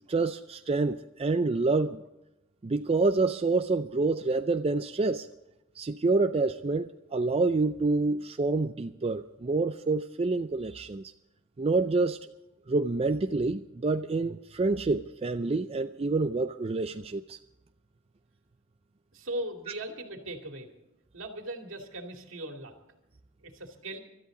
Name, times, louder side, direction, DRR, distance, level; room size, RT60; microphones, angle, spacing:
voice 1, 0.1-2.0 2.6-5.3 5.8-11.1 11.6-12.2 12.7-17.4, right 3 dB, 30° right, 8 dB, 0.4 m, -27 dB
voice 2, 19.1-20.7 21.1-22.7 23.4-24.0, right 1 dB, 65° right, 3 dB, 2.5 m, -38 dB
24.5 x 13.0 x 3.8 m, 0.95 s
head